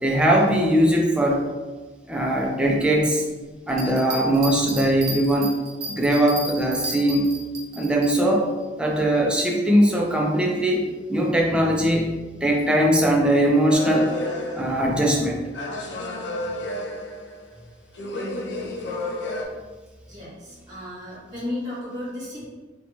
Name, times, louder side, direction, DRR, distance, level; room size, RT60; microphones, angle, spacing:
voice 1, 0.0-1.5 2.1-3.2 3.7-5.5 5.9-7.3 7.7-8.5 8.8-10.8 11.1-12.1 12.4-14.1 14.5-15.4, right 1 dB, 5° right, -1 dB, 0.3 m, -20 dB
sound 1, 3.7-8.1, right 2 dB, 60° right, 0.7 m, -34 dB
sound 2, 13.7-15.2 15.5-17.6 17.9-19.4, left 1 dB, 80° left, 0.4 m, -31 dB
voice 2, 20.1-22.5, left 1 dB, 20° right, -9 dB, 1.1 m, -34 dB
2.6 x 2.2 x 2.9 m, 1.3 s
head